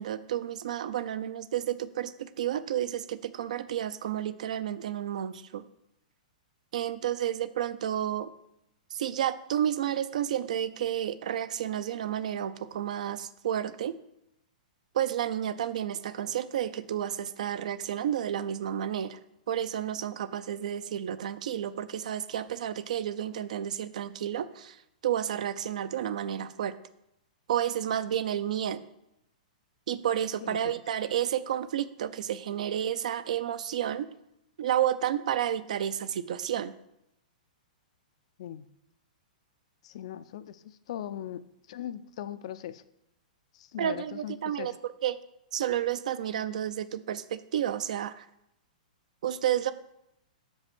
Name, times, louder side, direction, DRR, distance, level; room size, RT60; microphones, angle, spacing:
voice 1, 0.0-5.6 6.7-8.3 8.9-13.9 14.9-19.2 19.5-26.8 27.5-28.8 29.9-34.1 34.6-36.7 43.8-44.7 45.0-45.2 45.5-48.3 49.2-49.7, right 10 dB, 60° right, 14 dB, 0.4 m, -31 dB
voice 2, 39.8-42.8 43.5-44.8, left 11 dB, 45° left, 13 dB, 0.4 m, -40 dB
6.2 x 5.3 x 6.0 m, 0.83 s
hypercardioid pair, 170°, 4 cm